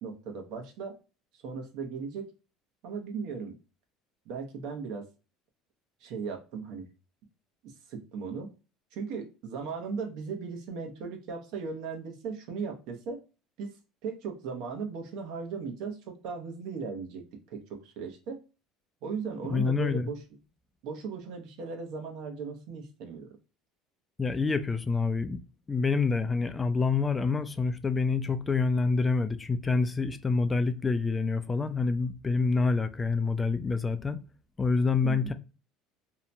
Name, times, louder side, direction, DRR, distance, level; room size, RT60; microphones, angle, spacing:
voice 1, 0.0-1.0 1.4-2.3 2.8-3.6 4.3-5.1 6.0-6.9 7.6-8.5 8.9-13.2 13.6-13.7 14.0-18.4 19.0-20.2 20.8-23.4 35.0-35.3, right 5 dB, 70° right, 0.8 m, -37 dB
voice 2, 19.5-20.0 24.2-25.4 25.7-34.2 34.6-35.3, left 4 dB, 20° left, 0.3 m, -27 dB
2.8 x 2.2 x 2.5 m
supercardioid pair, 105°, 0 cm